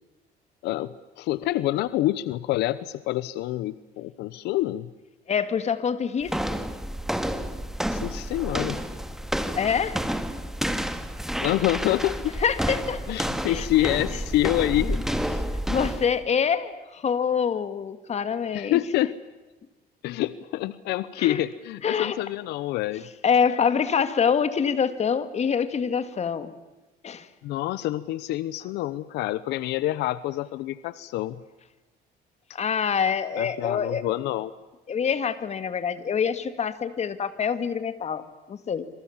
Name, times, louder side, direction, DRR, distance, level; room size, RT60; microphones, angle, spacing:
voice 1, 0.6-4.9 7.9-8.8 11.4-12.3 13.1-15.4 18.5-19.2 20.0-23.0 27.4-31.4 33.4-34.5, left 15 dB, 85° left, 16 dB, 0.9 m, -27 dB
voice 2, 5.3-6.4 9.6-10.0 12.4-13.0 13.5-13.9 15.7-18.8 21.2-21.4 21.8-22.2 23.2-26.5 27.0-27.3 32.5-34.0 34.9-38.8, left 7 dB, 40° left, 11 dB, 2.2 m, -25 dB
sound 1, 6.2-16.2, equal, ahead, 2.1 m, -30 dB
27.0 x 26.0 x 7.4 m, 1.1 s
cardioid pair, 110°, 17 cm